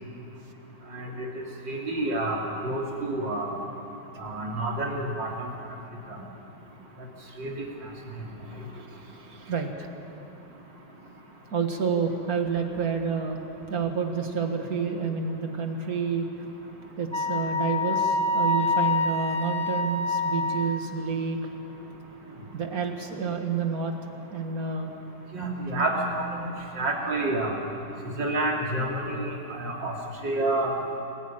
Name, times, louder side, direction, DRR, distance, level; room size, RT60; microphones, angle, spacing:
voice 1, 0.9-3.6 4.2-5.5 6.1-6.2 7.4-7.7 25.3-26.5 26.8-27.5 28.2-29.9 30.2-30.7, right 2 dB, 90° right, -1 dB, 3.6 m, -29 dB
voice 2, 9.2-9.9 11.5-13.4 13.7-16.3 17.0-21.4 22.5-23.9 24.3-24.9, right 5 dB, 55° right, 4 dB, 2.1 m, -29 dB
Wind instrument woodwind instrument, 17.1-21.0, left 2 dB, 5° left, 0.9 m, -26 dB
27.0 x 15.5 x 8.9 m, 2.9 s
omnidirectional pair, 1.9 m